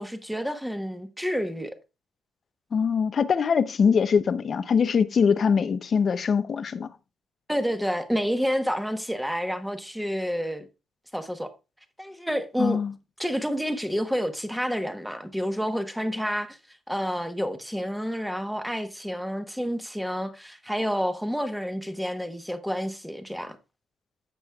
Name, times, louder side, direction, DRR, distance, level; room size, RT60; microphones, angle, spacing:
voice 1, 0.0-1.8 7.5-10.7 11.1-11.5 12.0-12.8 13.2-23.6, equal, ahead, 1.1 m, -29 dB
voice 2, 2.7-6.9 12.6-12.9, left 6 dB, 50° left, 0.6 m, -23 dB
15.0 x 6.2 x 2.3 m
cardioid pair, 90°, 0 cm